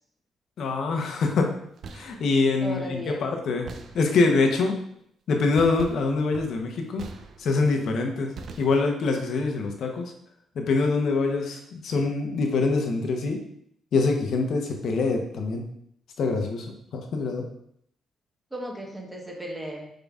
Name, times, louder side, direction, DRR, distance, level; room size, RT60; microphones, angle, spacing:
voice 1, 0.6-1.5 1.9-3.7 3.9-4.8 5.3-7.0 7.4-8.3 8.6-10.1 10.5-13.4 13.9-15.6 16.2-16.7 16.9-17.5, left 3 dB, 65° left, 3 dB, 0.8 m, -24 dB
sound 1, 1.6-2.3 3.7-4.4 5.5-7.7 8.4-9.1, right 4 dB, 60° right, 0.5 m, -42 dB
voice 2, 2.6-3.2 18.5-19.9, equal, 10° right, -1 dB, 1.1 m, -35 dB
5.2 x 3.8 x 2.4 m, 0.69 s
cardioid pair, 90°, 0 cm